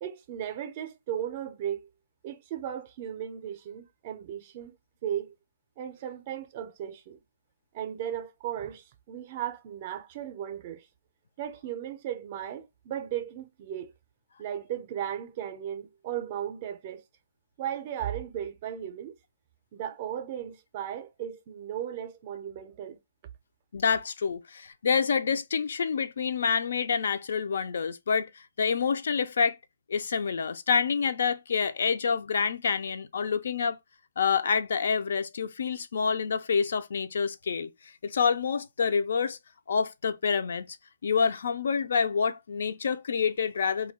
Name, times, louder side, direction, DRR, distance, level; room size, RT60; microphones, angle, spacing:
voice 1, 0.0-1.9 2.2-4.7 5.0-5.3 5.8-7.2 7.7-10.9 11.4-13.9 14.4-17.0 17.6-19.2 19.7-23.0, right 10 dB, 35° right, 0.4 m, -36 dB
voice 2, 23.7-29.6 29.9-33.8 34.2-37.7 38.0-39.4 39.7-40.8 41.0-43.9, left 6 dB, 65° left, 0.3 m, -27 dB
2.2 x 2.2 x 3.3 m
hypercardioid pair, 155°, 0 cm